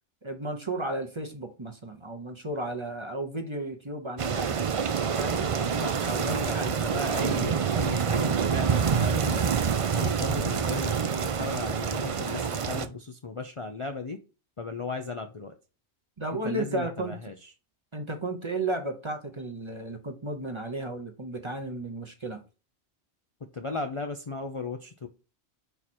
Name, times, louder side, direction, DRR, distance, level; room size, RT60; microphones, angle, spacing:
voice 1, 0.2-4.7 5.1-5.6 6.1-6.9 16.2-17.2 17.9-22.4, right 2 dB, 30° right, 0.8 m, -34 dB
sound 1, 4.2-12.9, right 6 dB, 50° right, 0.4 m, -27 dB
voice 2, 5.7-9.4 9.9-14.2 14.6-15.5 16.3-17.5 23.4-25.1, left 3 dB, 40° left, 0.5 m, -36 dB
4.9 x 4.5 x 4.3 m
omnidirectional pair, 1.2 m